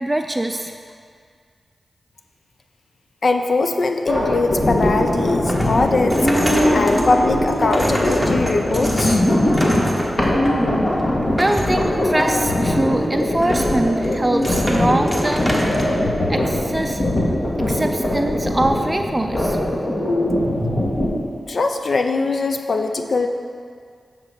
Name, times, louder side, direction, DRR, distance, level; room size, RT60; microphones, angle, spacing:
voice 1, 0.0-0.7 11.3-17.0 17.6-19.6, right 1 dB, 25° right, 5 dB, 0.4 m, -23 dB
voice 2, 3.2-6.2 6.7-9.2 21.5-23.3, left 3 dB, 65° left, 5 dB, 0.5 m, -21 dB
sound 1, 4.1-21.1, left 1 dB, 45° left, 1.6 m, -21 dB
sound 2, 4.6-16.0, equal, 10° left, 1.3 m, -28 dB
8.6 x 3.9 x 6.0 m, 2.1 s
cardioid pair, 40°, 0 cm